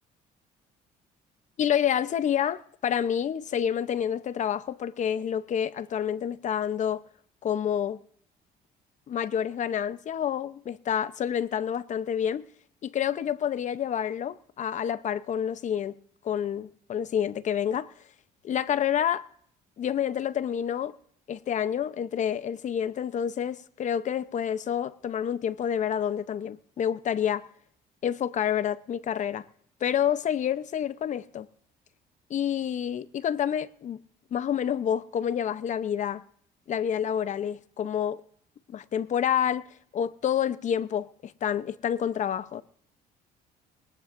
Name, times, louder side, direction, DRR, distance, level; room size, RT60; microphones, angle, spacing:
voice 1, 1.6-7.0 7.4-8.0 9.1-12.5 12.8-15.9 16.2-17.9 18.4-19.3 19.8-20.9 21.3-27.4 28.0-29.4 29.8-31.5 32.3-34.0 34.3-36.2 36.7-38.2 38.7-39.7 39.9-42.6, left 9 dB, 45° left, 0.7 m, -28 dB
20.0 x 18.5 x 2.6 m
cardioid pair, 110°, 17 cm